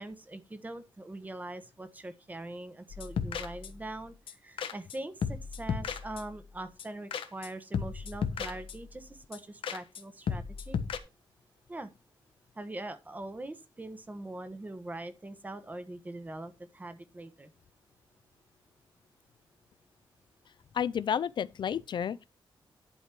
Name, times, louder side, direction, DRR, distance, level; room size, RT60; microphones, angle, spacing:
voice 1, 0.0-10.8 11.7-11.9 12.6-17.5, right 2 dB, 20° right, 1.2 m, -42 dB
sound 1, 2.9-3.9 4.3-4.4 4.6-5.0 5.2-6.4 6.8-7.5 7.7-9.0 9.3-9.4 9.6-10.0 10.3-11.0, left 6 dB, 90° left, 1.3 m, -35 dB
voice 2, 20.7-22.3, left 8 dB, 60° left, 0.6 m, -31 dB
11.0 x 5.0 x 6.0 m
wide cardioid pair, 160°, 9 cm